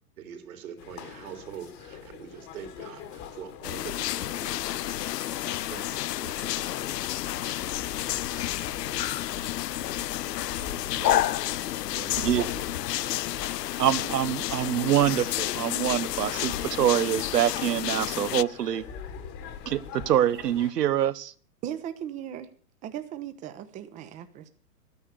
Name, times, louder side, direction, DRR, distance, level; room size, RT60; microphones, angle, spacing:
voice 1, 0.2-5.0 5.4-7.0 10.6-11.3 11.9-12.9, right 8 dB, 60° right, 3.4 m, -44 dB
sound 1, 0.8-20.7, left 7 dB, 30° left, 1.4 m, -44 dB
sound 2, 3.6-18.4, left 14 dB, 85° left, 0.5 m, -30 dB
voice 2, 12.2-12.5 13.4-13.5 13.8-18.8 19.6-21.3, right 11 dB, 80° right, 1.0 m, -25 dB
voice 3, 21.6-22.5 22.8-24.5, right 10 dB, 15° right, 0.8 m, -37 dB
12.5 x 9.6 x 6.7 m
hypercardioid pair, 145°, 47 cm